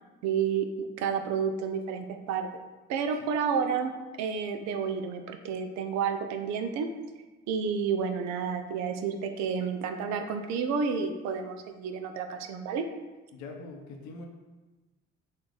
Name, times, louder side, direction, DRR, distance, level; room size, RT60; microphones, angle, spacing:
voice 1, 0.2-2.5 2.9-3.9 4.2-6.9 7.5-12.8, right 6 dB, 65° right, 7 dB, 0.4 m, -30 dB
voice 2, 13.3-14.3, left 3 dB, 60° left, 2 dB, 0.7 m, -42 dB
3.1 x 2.4 x 3.7 m, 1.2 s
hypercardioid pair, 55°, 31 cm